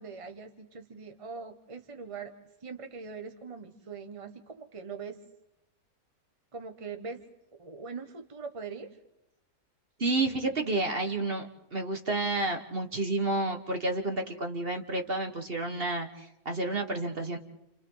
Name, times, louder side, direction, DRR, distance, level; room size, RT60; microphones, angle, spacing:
voice 1, 0.0-2.3 2.6-5.2 6.5-7.2 7.6-9.0, right 5 dB, 25° right, 6 dB, 1.4 m, -42 dB
voice 2, 10.0-17.4, right 2 dB, 40° right, 5 dB, 1.6 m, -30 dB
29.5 x 29.5 x 4.0 m, 0.87 s
omnidirectional pair, 1.5 m